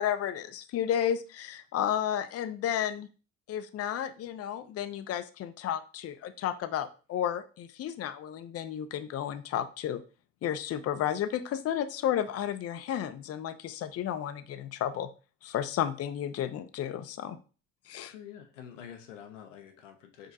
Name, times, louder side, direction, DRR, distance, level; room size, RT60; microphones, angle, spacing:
voice 1, 0.0-3.1 3.5-10.0 10.4-15.1 15.4-17.4 17.9-18.1, left 10 dB, 45° left, 11 dB, 0.5 m, -32 dB
voice 2, 18.1-20.3, left 9 dB, 90° left, 6 dB, 0.6 m, -47 dB
5.0 x 3.0 x 2.6 m, 0.36 s
hypercardioid pair, 50°, 36 cm